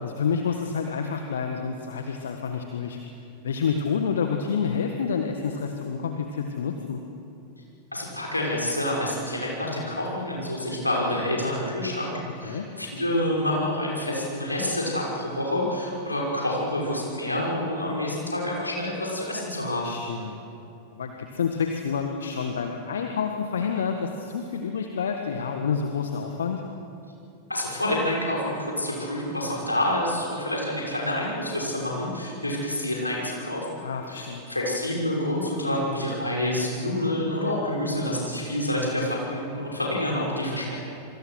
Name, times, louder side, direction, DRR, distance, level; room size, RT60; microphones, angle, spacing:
voice 1, 0.0-7.0 12.4-12.7 19.8-20.3 20.9-26.6 33.8-34.4, left 6 dB, 65° left, 4 dB, 1.6 m, -29 dB
voice 2, 7.9-19.9 27.5-33.8 34.1-40.8, left 1 dB, 85° left, -3 dB, 6.0 m, -28 dB
27.5 x 24.0 x 6.3 m, 2.7 s
figure-of-eight pair, 90°, 0 cm